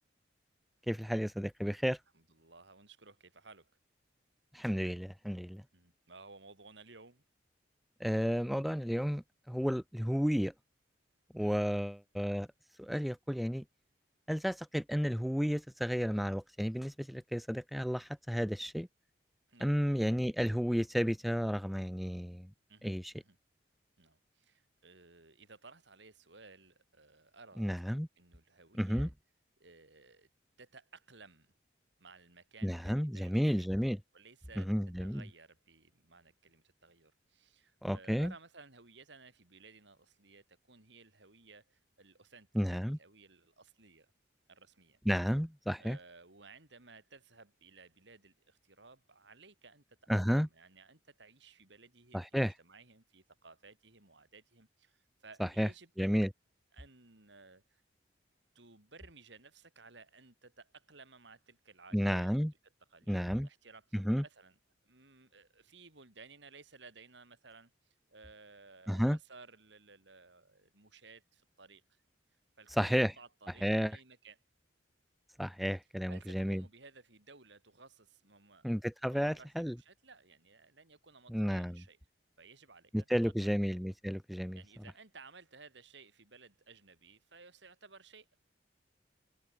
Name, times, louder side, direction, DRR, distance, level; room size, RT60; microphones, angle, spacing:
voice 1, 0.9-2.0 4.5-5.6 8.0-10.5 11.3-12.5 12.8-13.6 14.3-18.9 19.6-22.5 22.8-23.1 27.6-28.1 28.8-29.1 32.6-34.0 34.6-35.2 37.8-38.3 42.6-43.0 45.1-46.0 50.1-50.5 52.1-52.5 55.4-55.7 56.0-56.3 61.9-62.5 63.1-63.5 63.9-64.2 68.9-69.2 72.7-73.1 73.6-74.0 75.4-76.6 78.6-79.8 81.3-81.8 82.9-84.6, equal, ahead, 0.3 m, -32 dB
voice 2, 2.1-3.7 5.7-7.2 11.4-11.6 17.1-17.2 19.5-19.7 22.7-23.4 24.0-27.7 28.2-29.1 29.6-30.3 30.6-31.6 32.0-33.7 34.1-34.7 35.0-44.1 44.5-45.0 45.8-56.1 56.7-57.8 58.6-62.3 62.9-64.6 64.8-72.0 72.6-74.4 76.1-78.8 79.1-82.0 82.4-83.5 84.5-88.4, right 4 dB, 70° right, 3.6 m, -57 dB
head